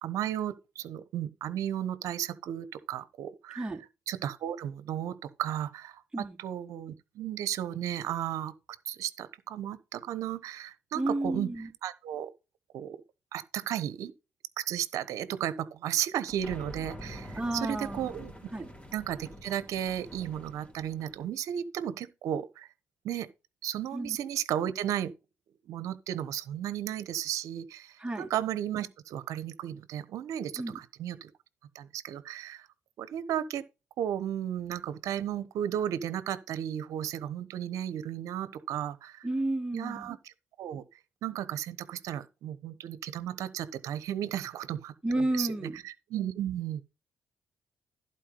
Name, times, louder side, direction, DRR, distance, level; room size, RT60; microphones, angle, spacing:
voice 1, 0.0-3.7 4.1-8.5 8.8-11.5 11.8-12.3 12.7-13.0 13.3-14.1 14.6-18.3 18.9-22.7 23.0-23.3 23.6-25.1 25.7-31.3 31.7-32.7 33.0-33.6 34.0-39.3 39.7-40.3 40.6-40.8 41.2-44.9 45.3-46.8, right 11 dB, 75° right, 1.0 m, -34 dB
voice 2, 10.9-11.7 17.4-18.1 18.5-18.7 23.9-24.2 28.0-28.3 30.6-30.8 39.2-40.1 45.0-45.8, right 2 dB, 15° right, 2.7 m, -31 dB
sound 1, 16.3-21.3, equal, 25° left, 3.8 m, -46 dB
11.5 x 4.6 x 5.3 m
supercardioid pair, 60°, 6 cm